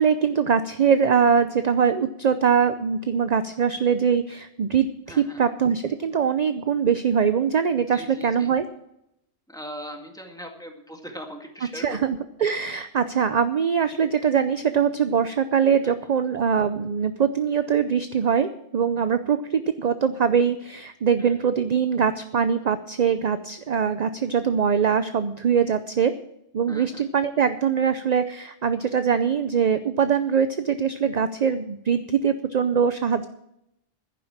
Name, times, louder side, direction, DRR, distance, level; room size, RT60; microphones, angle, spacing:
voice 1, 0.0-8.7 11.7-26.1 26.5-33.3, right 7 dB, 45° right, 11 dB, 0.6 m, -22 dB
voice 2, 5.1-5.4 7.9-8.5 9.5-12.1 15.8-15.9 21.2-21.5 26.7-27.0, equal, 5° left, 3 dB, 1.9 m, -40 dB
11.0 x 10.5 x 7.3 m, 0.80 s
omnidirectional pair, 1.2 m